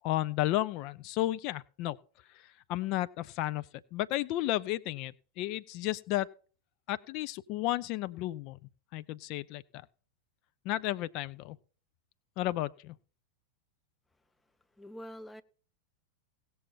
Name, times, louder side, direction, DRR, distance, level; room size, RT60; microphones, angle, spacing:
voice 1, 0.0-2.0 2.3-6.3 6.9-8.6 8.9-9.6 10.6-11.6 12.4-13.0, left 15 dB, 40° left, 0.5 m, -33 dB
voice 2, 14.7-15.4, equal, 10° left, 0.7 m, -45 dB
17.5 x 7.0 x 4.1 m
figure-of-eight pair, 90°, 0 cm